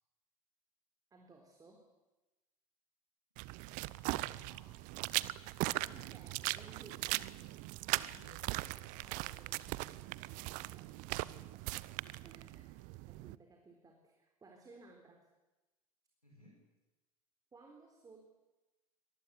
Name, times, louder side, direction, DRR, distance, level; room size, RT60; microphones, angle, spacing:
voice 1, 1.1-1.9 5.8-7.3 8.9-11.6 12.2-15.3 17.5-18.2, right 3 dB, 20° right, 3 dB, 4.0 m, -60 dB
sound 1, 3.4-13.4, right 20 dB, 45° right, 0.8 m, -39 dB
voice 2, 3.7-5.0 7.8-9.4 16.2-16.6, equal, 90° left, -2 dB, 5.7 m, -63 dB
24.5 x 19.5 x 8.4 m, 1.1 s
figure-of-eight pair, 75°, 19 cm